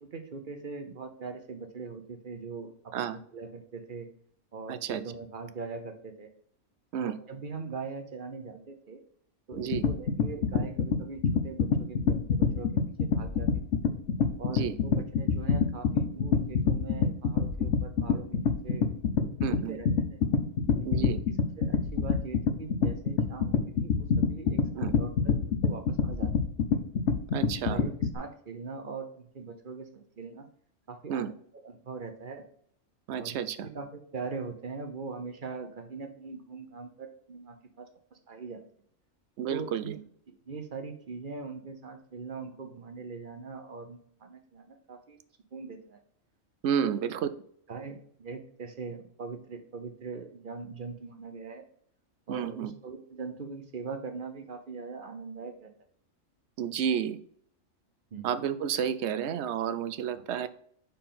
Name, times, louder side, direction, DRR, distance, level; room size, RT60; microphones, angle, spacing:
voice 1, 0.0-4.1 4.5-6.3 7.0-9.0 9.5-12.7 13.0-13.5 14.4-19.0 19.4-20.2 20.7-25.4 25.6-26.3 27.5-30.5 30.9-31.3 31.6-32.4 33.2-33.4 33.6-38.6 39.5-39.9 40.3-45.2 45.5-46.0 46.8-47.2 47.7-51.7 52.3-55.7 58.1-58.3 60.1-60.2, right 4 dB, 45° right, 6 dB, 0.9 m, -41 dB
voice 2, 4.7-5.0 6.9-7.2 9.6-9.9 14.5-14.7 19.4-19.8 20.8-21.2 24.8-24.9 27.3-27.8 31.1-31.3 33.1-33.7 39.4-40.0 46.6-47.3 52.3-52.7 56.6-57.2 58.2-60.5, right 8 dB, 65° right, 12 dB, 0.8 m, -31 dB
sound 1, 9.5-28.1, left 5 dB, 65° left, 1.0 m, -26 dB
5.2 x 4.5 x 5.7 m, 0.64 s
omnidirectional pair, 1.3 m